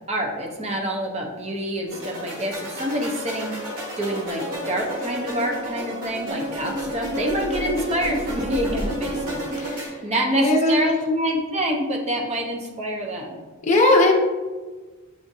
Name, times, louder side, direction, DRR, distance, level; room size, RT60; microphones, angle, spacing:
voice 1, 0.1-3.5 4.0-13.4, equal, 30° right, 0 dB, 0.6 m, -27 dB
sound 1, 1.9-9.9, equal, 85° right, 1.4 m, -31 dB
voice 2, 9.6-10.0 10.4-10.8 13.6-14.2, left 2 dB, 35° left, -1 dB, 0.6 m, -18 dB
7.1 x 2.5 x 2.6 m, 1.3 s
head